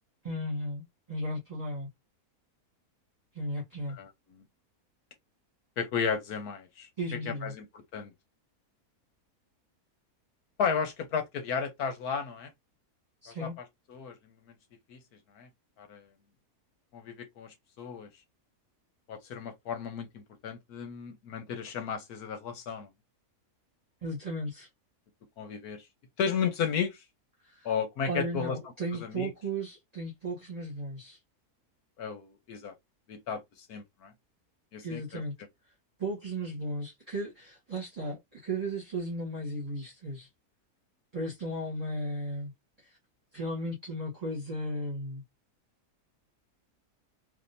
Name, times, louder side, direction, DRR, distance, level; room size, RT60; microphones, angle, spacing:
voice 1, 0.2-1.9 3.3-4.0 7.0-7.5 13.2-13.6 24.0-24.7 27.4-27.7 28.0-31.2 34.8-35.3 36.0-40.3 41.1-42.5 42.8-43.0 43.3-45.2, right 1 dB, 25° right, 1.4 m, -35 dB
voice 2, 3.9-4.4 5.8-8.1 10.6-12.5 13.3-14.2 14.9-15.0 15.3-15.5 15.8-16.1 16.9-18.1 19.1-22.9 25.4-25.8 26.2-27.0 27.6-28.6 28.9-29.3 32.0-32.7 33.1-34.1 34.7-35.2, left 6 dB, 75° left, 1.4 m, -34 dB
3.7 x 2.9 x 2.6 m
omnidirectional pair, 1.6 m